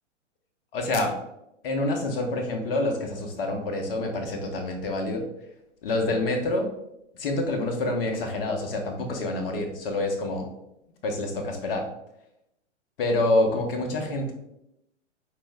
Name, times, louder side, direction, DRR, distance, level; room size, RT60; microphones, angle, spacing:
voice 1, 0.7-1.1 1.6-5.3 5.8-6.7 7.2-10.5 11.0-11.9 13.0-14.3, left 2 dB, 50° left, 3 dB, 0.9 m, -27 dB
5.2 x 2.0 x 3.4 m, 0.82 s
figure-of-eight pair, 115°, 37 cm